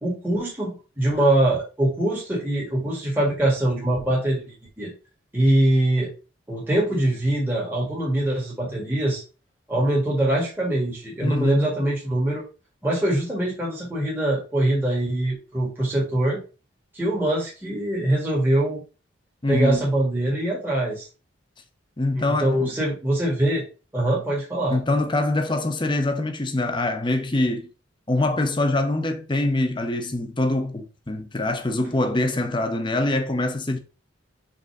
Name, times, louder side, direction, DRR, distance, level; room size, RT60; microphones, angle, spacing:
voice 1, 0.0-4.9 5.3-6.1 6.5-9.2 9.7-12.4 12.8-16.4 16.9-18.8 19.5-21.1 22.1-23.7 23.9-24.8, right 1 dB, 10° right, 1.7 m, -23 dB
voice 2, 11.2-11.6 19.4-19.8 22.0-22.7 24.7-27.7 28.1-33.8, left 2 dB, 25° left, 0.7 m, -24 dB
5.2 x 3.9 x 4.8 m
head